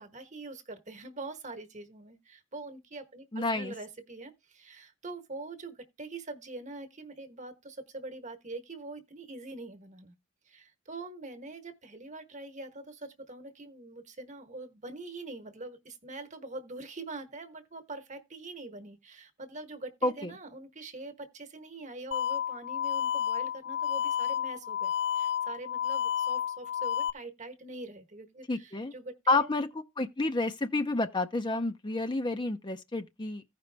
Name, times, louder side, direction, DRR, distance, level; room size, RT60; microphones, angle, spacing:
voice 1, 0.0-10.1 10.5-29.5, right 2 dB, 35° right, 1.2 m, -44 dB
voice 2, 3.3-3.7 20.0-20.3 28.5-28.9 29.3-29.7 30.0-33.4, left 2 dB, 25° left, 0.6 m, -29 dB
sound 1, 22.1-27.1, left 9 dB, 65° left, 0.5 m, -31 dB
15.5 x 5.2 x 3.4 m
head